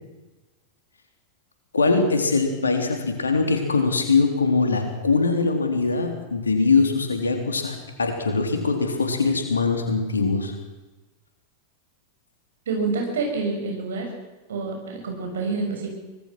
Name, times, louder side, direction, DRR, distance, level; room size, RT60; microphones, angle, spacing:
voice 1, 1.7-10.5, left 4 dB, 75° left, 4 dB, 3.7 m, -22 dB
voice 2, 12.7-14.1 14.5-15.9, right 4 dB, 65° right, 2 dB, 6.7 m, -27 dB
24.5 x 19.5 x 6.2 m, 1.1 s
figure-of-eight pair, 90°, 0 cm